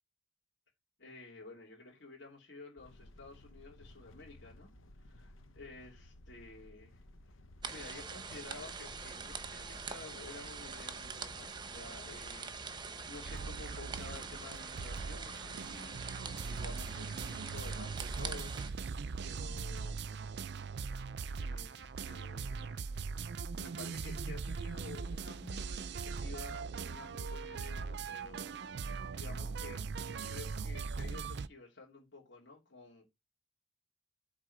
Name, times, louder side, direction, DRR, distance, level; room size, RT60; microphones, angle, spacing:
voice 1, 1.0-4.7 5.6-7.0 7.7-18.9 19.2-20.1 21.4-29.9 30.3-33.1, left 3 dB, 60° left, 2.9 m, -52 dB
sound 1, 2.8-16.9, left 1 dB, 85° left, 1.0 m, -57 dB
sound 2, 7.6-18.7, right 5 dB, 20° right, 0.8 m, -44 dB
sound 3, 13.2-31.5, right 5 dB, 55° right, 0.4 m, -40 dB
8.4 x 3.7 x 6.5 m
head